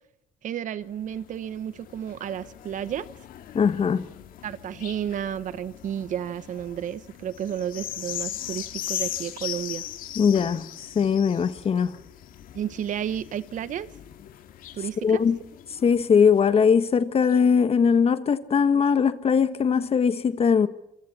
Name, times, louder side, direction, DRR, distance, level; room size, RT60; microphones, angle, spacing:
voice 1, 0.4-3.1 4.4-9.8 12.5-13.9 14.7-15.2, right 10 dB, 60° right, 1.1 m, -32 dB
sound 1, 0.8-16.7 17.3-17.4, left 12 dB, 75° left, 2.0 m, -39 dB
voice 2, 3.5-4.1 10.2-10.7 10.9-12.0 15.0-15.4 15.8-20.7, left 6 dB, 40° left, 1.4 m, -20 dB
27.0 x 25.5 x 4.3 m
cardioid pair, 100°, 15 cm